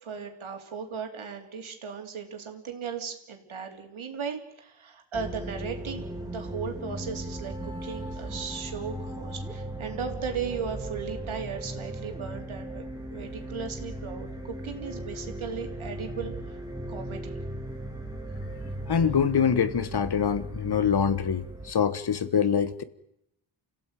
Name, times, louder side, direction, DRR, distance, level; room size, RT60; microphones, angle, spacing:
voice 1, 0.0-12.8 13.1-16.6 16.9-17.4, right 6 dB, 90° right, 3.9 m, -37 dB
sound 1, 5.1-21.7, right 1 dB, 10° right, 2.5 m, -37 dB
voice 2, 18.9-22.8, left 7 dB, 55° left, 1.4 m, -25 dB
30.0 x 16.0 x 9.2 m
wide cardioid pair, 165°, 47 cm